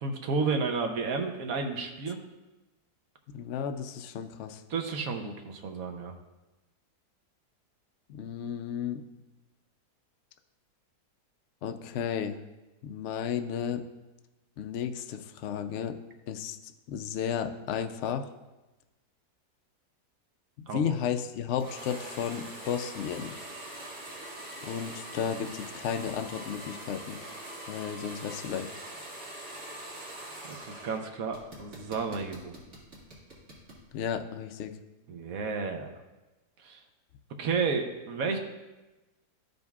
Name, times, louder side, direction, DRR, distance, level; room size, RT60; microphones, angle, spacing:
voice 1, 0.0-2.2 4.7-6.1 20.7-20.9 30.5-32.5 35.1-36.0 36.6-36.8 37.4-38.4, right 4 dB, 65° right, 4 dB, 1.1 m, -32 dB
voice 2, 3.3-4.6 8.1-9.0 11.6-12.4 12.8-13.8 14.6-15.9 16.3-16.6 16.9-18.3 20.7-23.3 24.6-27.2 27.7-28.7 33.9-34.7, left 8 dB, 75° left, 7 dB, 0.6 m, -33 dB
sound 1, 21.6-31.0 31.3-33.8, right 1 dB, 45° right, 2.3 m, -43 dB
13.5 x 5.2 x 2.4 m, 1.1 s
omnidirectional pair, 1.8 m